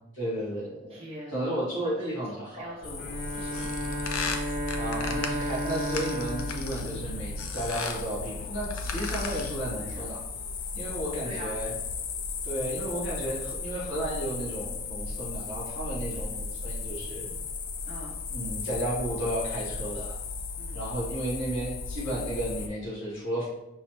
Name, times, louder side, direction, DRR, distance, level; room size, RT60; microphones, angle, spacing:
voice 1, 0.2-1.0 1.3-2.6 4.8-10.2 10.7-11.7 12.4-17.3 18.3-20.2 20.7-23.5, right 1 dB, 65° left, -6 dB, 1.5 m, -33 dB
voice 2, 0.9-4.0 9.8-10.0 11.2-11.5 16.2-16.4 17.9-18.2 20.6-20.8, right 1 dB, 30° right, -4 dB, 0.6 m, -44 dB
sound 1, 2.8-22.7, left 4 dB, 40° left, 0.3 m, -36 dB
Bowed string instrument, 3.0-7.8, equal, 5° right, 1.4 m, -34 dB
sound 2, 3.5-7.0 7.4-8.1 8.6-9.6, left 5 dB, 90° left, 0.6 m, -36 dB
5.5 x 3.1 x 2.9 m, 0.93 s
head